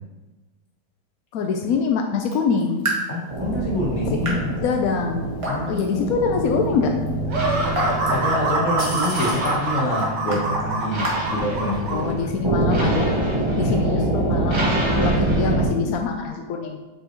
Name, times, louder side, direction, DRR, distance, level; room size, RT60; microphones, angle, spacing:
voice 1, 1.3-2.9 4.1-5.4 5.7-6.9 11.9-13.1 13.6-14.7 15.0-16.8, left 5 dB, 75° left, 3 dB, 0.8 m, -24 dB
Raindrop / Drip, 2.2-12.1, right 1 dB, 20° right, 1.4 m, -34 dB
voice 2, 3.1-4.6 5.5-6.1 8.1-12.5 13.6-14.3, left 1 dB, 40° left, -3 dB, 1.5 m, -27 dB
sound 1, 3.3-15.7, right 2 dB, 50° right, 0.3 m, -25 dB
sound 2, 7.3-12.0, right 2 dB, 65° right, 1.4 m, -25 dB
6.3 x 5.4 x 3.0 m, 1.1 s
omnidirectional pair, 2.1 m